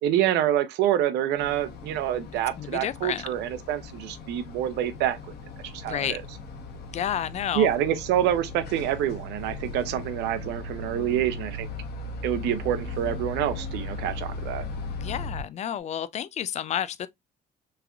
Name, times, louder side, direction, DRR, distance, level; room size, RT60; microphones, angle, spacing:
voice 1, 0.0-5.2 5.7-6.2 7.5-11.7 12.2-14.6, right 11 dB, 85° right, 0.6 m, -27 dB
sound 1, 1.4-15.3, left 4 dB, 70° left, 1.0 m, -42 dB
voice 2, 2.6-3.3 5.8-6.2 6.9-7.7 15.0-17.1, left 9 dB, 45° left, 0.4 m, -30 dB
sound 2, 3.1-15.4, left 2 dB, 55° right, 1.5 m, -38 dB
3.5 x 3.2 x 2.4 m
cardioid pair, 110°, 17 cm